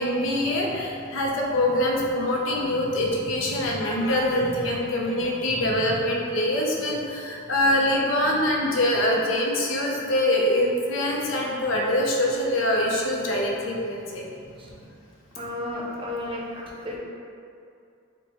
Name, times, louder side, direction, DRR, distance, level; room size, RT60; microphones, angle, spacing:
voice 1, 0.0-14.5, left 1 dB, 70° left, -1 dB, 0.6 m, -24 dB
voice 2, 15.4-16.4 16.8-17.0, left 1 dB, 25° right, -4 dB, 0.6 m, -32 dB
4.4 x 2.2 x 4.2 m, 2.5 s
head